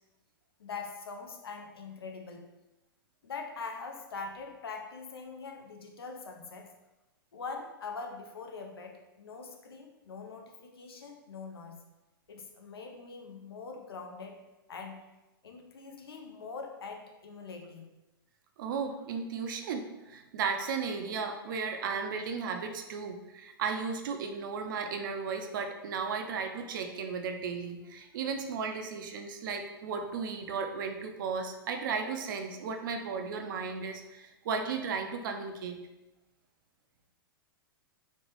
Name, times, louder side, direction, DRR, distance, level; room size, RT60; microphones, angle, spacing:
voice 1, 0.6-2.5 3.2-6.7 7.3-11.8 12.3-14.4 14.7-15.0 15.4-17.9, left 4 dB, 80° left, 3 dB, 0.5 m, -43 dB
voice 2, 18.6-35.8, right 5 dB, 60° right, 5 dB, 0.4 m, -35 dB
3.1 x 2.2 x 2.9 m, 1.0 s
hypercardioid pair, 110°, 12 cm